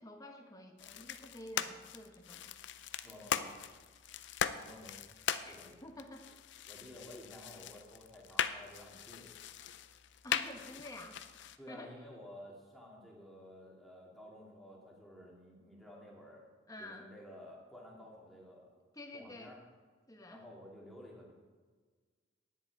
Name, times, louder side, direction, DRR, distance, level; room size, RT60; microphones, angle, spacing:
voice 1, 0.0-2.5 5.4-5.5 5.8-6.4 10.2-11.9 16.7-17.1 18.9-19.6 20.1-20.4, left 1 dB, 15° left, 3 dB, 1.1 m, -50 dB
sound 1, 0.8-11.6, left 8 dB, 60° left, 0.5 m, -40 dB
voice 2, 3.0-3.6 4.5-5.1 5.5-5.8 6.7-9.3 11.6-16.5 16.8-18.7 19.1-19.6 20.3-21.3, left 1 dB, ahead, -4 dB, 2.3 m, -53 dB
10.5 x 9.3 x 4.7 m, 1.4 s
head